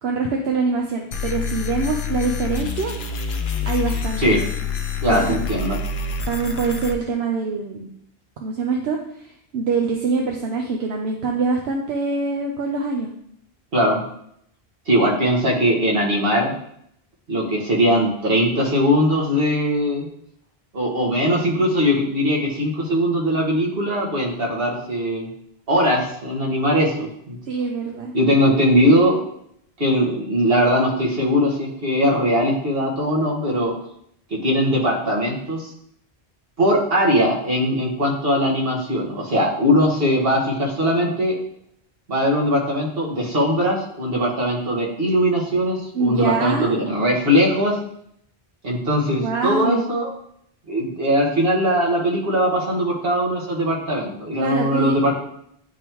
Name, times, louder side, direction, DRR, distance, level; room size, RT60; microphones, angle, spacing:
voice 1, 0.0-2.9 3.7-4.4 5.1-5.4 6.3-7.9 8.4-13.1 24.2-24.3 26.9-27.1 27.5-28.1 45.9-46.8 49.2-49.8 54.4-54.9, right 4 dB, 80° right, 1 dB, 1.0 m, -24 dB
sound 1, 1.1-6.9, left 5 dB, 60° left, 0.8 m, -27 dB
voice 2, 5.0-5.8 13.7-14.0 14.9-16.5 17.3-20.1 20.7-25.3 25.7-27.4 28.1-29.2 29.8-33.7 34.3-35.7 36.6-41.4 42.1-47.8 48.6-50.1 50.7-55.1, equal, 65° right, -3 dB, 1.7 m, -20 dB
10.0 x 3.5 x 3.0 m, 0.70 s
omnidirectional pair, 1.1 m